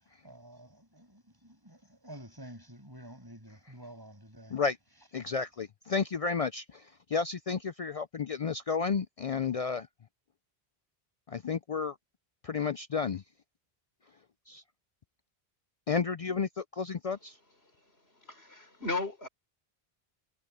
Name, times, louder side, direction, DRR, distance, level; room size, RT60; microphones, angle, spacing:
voice 1, 0.2-4.6, right 1 dB, 20° right, 7.0 m, -50 dB
voice 2, 5.1-9.9 11.3-12.0 12.4-13.2 14.5-14.6 15.9-17.4, left 5 dB, 50° left, 0.4 m, -32 dB
voice 3, 17.8-19.3, left 3 dB, 90° left, 5.5 m, -36 dB
omnidirectional pair, 1.0 m